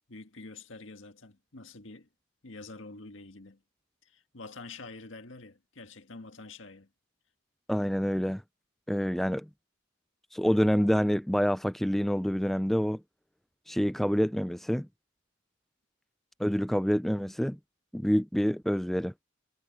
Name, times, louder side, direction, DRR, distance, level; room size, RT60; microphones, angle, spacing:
voice 1, 0.1-2.1 2.4-3.6 4.0-6.9, left 3 dB, 75° left, 1.7 m, -47 dB
voice 2, 7.7-8.4 8.9-9.5 10.3-13.0 13.7-14.9 16.4-17.6 17.9-19.1, equal, ahead, 0.3 m, -27 dB
head